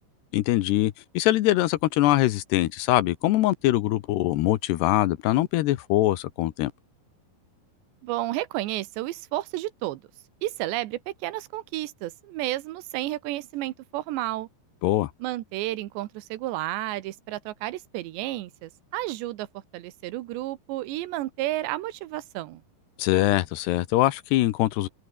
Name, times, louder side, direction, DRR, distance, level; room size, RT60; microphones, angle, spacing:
voice 1, 0.3-6.7 14.8-15.1 23.0-24.9, left 16 dB, 80° left, 3.0 m, -23 dB
voice 2, 8.0-10.0 10.4-14.5 15.2-19.5 19.7-22.6, right 16 dB, 85° right, 3.3 m, -31 dB
omnidirectional pair, 5.1 m